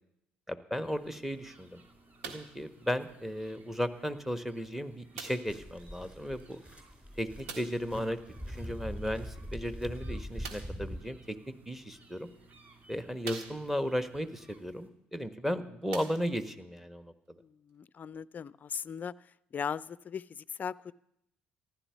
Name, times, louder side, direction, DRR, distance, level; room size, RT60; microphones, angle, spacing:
voice 1, 0.5-1.8 2.2-6.6 7.2-8.2 8.5-11.4 11.6-12.3 12.9-17.4, equal, 5° right, 9 dB, 1.3 m, -35 dB
sound 1, 0.8-14.9, right 3 dB, 40° right, 2.6 m, -60 dB
sound 2, 2.2-2.6 3.5-3.6 5.1-5.6 7.4-7.9 10.4-10.8 11.8-11.9 12.5-12.6 13.2-13.9 15.2-15.3 15.8-16.6 17.4-17.5, right 5 dB, 70° right, 1.6 m, -44 dB
sound 3, 5.5-11.0, equal, 20° right, 4.1 m, -42 dB
voice 2, 17.4-19.1 19.5-20.9, left 7 dB, 35° left, 20 dB, 0.4 m, -38 dB
14.5 x 11.5 x 7.0 m, 0.78 s
figure-of-eight pair, 55°, 5 cm